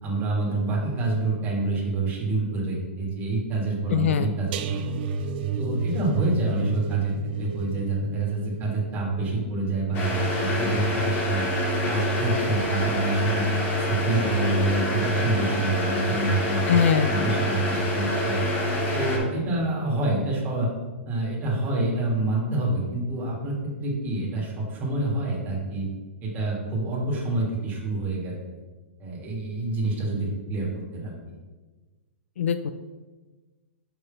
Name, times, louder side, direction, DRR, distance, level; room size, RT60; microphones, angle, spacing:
voice 1, 0.0-5.0 5.6-11.4 11.8-13.4 13.9-16.8 17.1-18.4 18.9-20.7 21.1-23.5 23.8-25.9 26.2-28.6 29.0-31.1, right 2 dB, 25° right, -3 dB, 1.8 m, -27 dB
voice 2, 3.9-4.3 16.7-17.1 32.4-32.7, left 7 dB, 80° left, 11 dB, 0.3 m, -22 dB
sound 1, 4.5-11.6 11.9-12.2 12.6-12.7, right 3 dB, 50° right, 0.5 m, -31 dB
sound 2, 9.9-19.2, equal, 30° left, 1.7 m, -26 dB
5.6 x 3.8 x 5.2 m, 1.3 s
hypercardioid pair, 140°, 7 cm